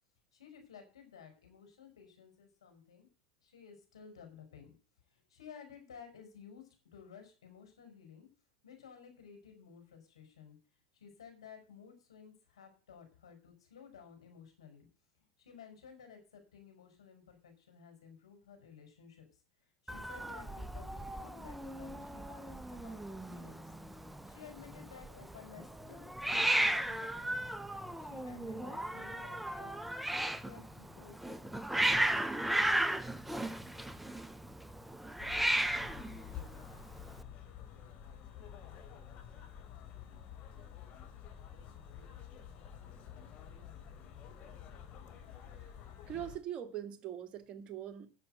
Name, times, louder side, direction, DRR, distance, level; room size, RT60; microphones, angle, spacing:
voice 1, 0.3-3.1 3.4-4.7 5.1-8.3 8.6-10.6 10.9-14.9 15.2-23.7 24.2-27.5 28.0-29.7 30.4-31.9, left 7 dB, 90° left, 5.5 m, -55 dB
Hiss, 19.9-37.2, right 1 dB, 5° right, 0.9 m, -35 dB
sound 1, 35.2-46.4, left 8 dB, 45° left, 3.6 m, -50 dB
voice 2, 46.1-48.1, right 10 dB, 40° right, 2.0 m, -42 dB
10.5 x 7.7 x 7.9 m
hypercardioid pair, 100°, 3 cm